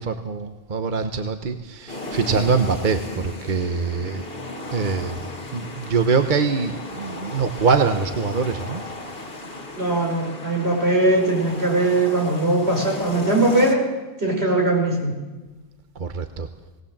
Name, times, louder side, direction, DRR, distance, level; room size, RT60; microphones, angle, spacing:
voice 1, 0.0-4.2 4.7-5.2 5.5-8.8 16.0-16.5, right 5 dB, 50° right, 7 dB, 1.1 m, -23 dB
sound 1, 1.9-13.7, left 2 dB, 65° left, 2.2 m, -35 dB
voice 2, 9.8-13.9 14.2-15.1, right 2 dB, 80° right, 0 dB, 5.4 m, -20 dB
19.0 x 19.0 x 7.3 m, 1.2 s
omnidirectional pair, 1.1 m